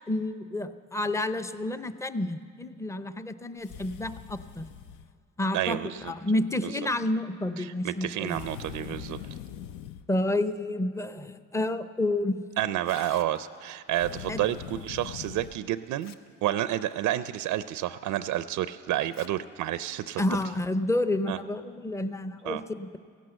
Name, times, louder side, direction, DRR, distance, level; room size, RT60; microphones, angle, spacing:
voice 1, 0.1-4.6 5.4-5.8 6.0-8.4 10.1-12.4 14.3-14.4 20.2-23.0, left 1 dB, 10° left, 11 dB, 0.6 m, -30 dB
sound 1, 3.6-5.1 8.3-10.1 13.9-15.6, left 9 dB, 85° left, 0.6 m, -42 dB
voice 2, 5.5-6.1 6.5-6.7 7.6-9.2 12.6-16.1 16.4-20.2 21.3-21.4 22.4-22.6, right 13 dB, 85° right, 13 dB, 0.5 m, -30 dB
Tearing, 12.7-13.7 15.2-15.3 15.8-16.5 16.9-17.0 17.6-17.7 19.0-19.3 19.7-19.8 20.6-20.9, left 6 dB, 60° left, 0.8 m, -51 dB
16.0 x 11.5 x 7.8 m, 2.1 s
cardioid pair, 90°, 30 cm